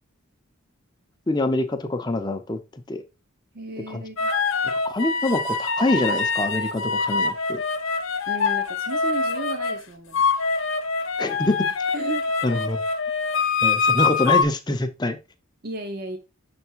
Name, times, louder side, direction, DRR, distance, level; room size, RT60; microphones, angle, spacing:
voice 1, 1.3-3.0 3.9-4.0 4.8-7.6 11.2-11.7 12.4-12.8 13.6-15.2, left 2 dB, 20° left, 0.5 m, -25 dB
voice 2, 3.5-4.3 8.3-10.2 11.9-12.3 12.5-12.6 15.6-16.2, right 3 dB, 45° right, 0.7 m, -34 dB
sound 1, 4.2-9.8 10.1-14.4, left 4 dB, 75° left, 0.7 m, -24 dB
6.3 x 3.5 x 4.5 m
head